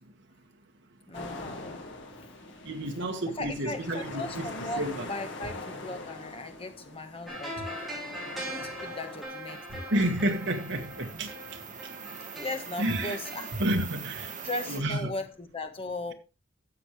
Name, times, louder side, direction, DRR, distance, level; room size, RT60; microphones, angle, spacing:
sound 1, 1.1-9.2, left 2 dB, 65° left, 2.1 m, -43 dB
voice 1, 1.1-1.8 2.2-2.3 3.4-7.8 8.3-9.9 12.3-13.5 14.4-16.1, left 2 dB, 30° left, 1.4 m, -37 dB
voice 2, 2.6-4.5 4.8-5.1 9.9-11.3 12.8-13.2 13.6-14.3 14.7-15.1, right 1 dB, 65° right, 1.8 m, -30 dB
sound 2, 7.3-14.9 15.2-15.3, equal, ahead, 4.0 m, -41 dB
sound 3, 8.9-14.8, right 7 dB, 40° right, 1.8 m, -43 dB
12.5 x 7.7 x 3.2 m
head